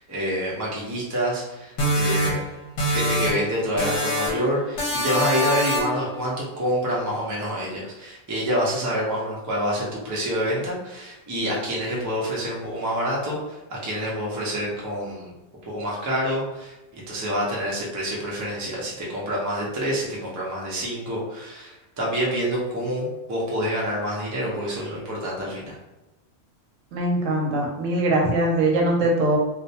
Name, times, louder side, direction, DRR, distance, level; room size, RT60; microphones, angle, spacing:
voice 1, 0.0-2.5 2.9-15.3 15.6-25.7, equal, 30° right, -4 dB, 0.3 m, -27 dB
sound 1, 1.8-3.5 3.8-4.5 4.8-6.0, equal, 65° left, 1.0 m, -24 dB
voice 2, 26.9-29.4, right 1 dB, 80° right, 0 dB, 0.9 m, -21 dB
2.4 x 2.1 x 2.7 m, 1.0 s
omnidirectional pair, 1.3 m